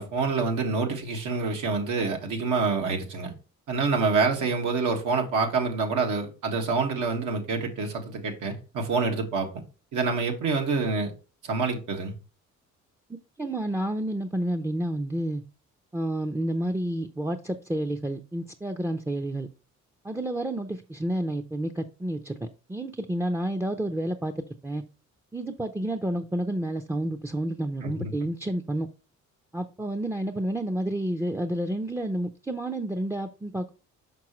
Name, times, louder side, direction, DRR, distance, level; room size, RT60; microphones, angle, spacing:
voice 1, 0.0-3.3 3.7-9.5 9.9-11.1 11.4-12.1 27.8-28.1, right 4 dB, 85° right, 1.7 m, -27 dB
voice 2, 13.4-15.4 15.9-19.5 20.0-24.3 24.6-24.8 25.3-28.9 29.5-33.7, right 1 dB, 10° right, 0.5 m, -30 dB
6.0 x 5.6 x 3.0 m
cardioid pair, 90°, 30 cm